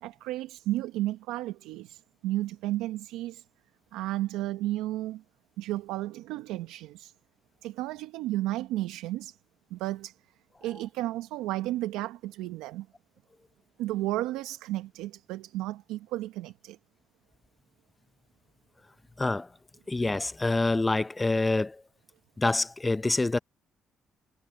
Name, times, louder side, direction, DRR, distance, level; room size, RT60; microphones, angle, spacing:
voice 1, 0.0-3.4 3.9-5.2 5.6-7.1 7.6-9.4 9.7-10.2 10.6-12.9 13.8-16.8, right 16 dB, 85° right, 1.1 m, -33 dB
voice 2, 19.9-21.8 22.4-23.4, left 2 dB, 20° left, 0.6 m, -26 dB
hypercardioid pair, 55°, 0 cm